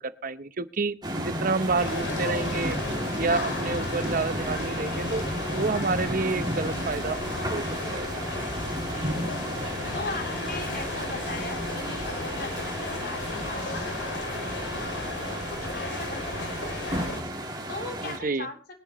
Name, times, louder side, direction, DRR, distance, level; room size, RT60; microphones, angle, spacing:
voice 1, 0.0-2.8 3.2-7.2 7.5-7.6 7.9-8.1 18.0-18.5, right 3 dB, 50° right, 13 dB, 0.8 m, -29 dB
sound 1, 1.0-18.2, right 1 dB, 25° right, 2.6 m, -33 dB
sound 2, 1.8-17.2, left 2 dB, 85° left, 2.3 m, -34 dB
voice 2, 8.7-14.3 14.8-15.2 15.5-18.6, left 2 dB, 60° left, 3 dB, 3.7 m, -40 dB
21.5 x 11.0 x 3.0 m, 0.37 s
head